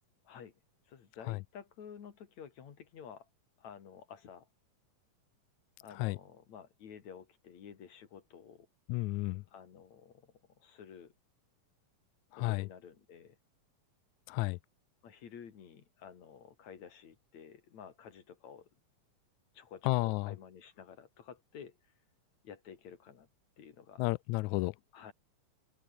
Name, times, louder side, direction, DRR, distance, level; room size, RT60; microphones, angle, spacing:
voice 1, 0.3-0.6 0.9-3.3 3.6-4.5 5.8-8.7 9.5-11.1 12.3-13.4 15.0-18.7 19.5-21.8 22.4-23.3 23.6-24.1 24.9-25.1, left 7 dB, 60° left, 3.5 m, -51 dB
voice 2, 8.9-9.4 12.4-12.7 14.3-14.6 19.9-20.3 24.0-24.7, left 22 dB, 80° left, 1.7 m, -31 dB
omnidirectional pair, 3.7 m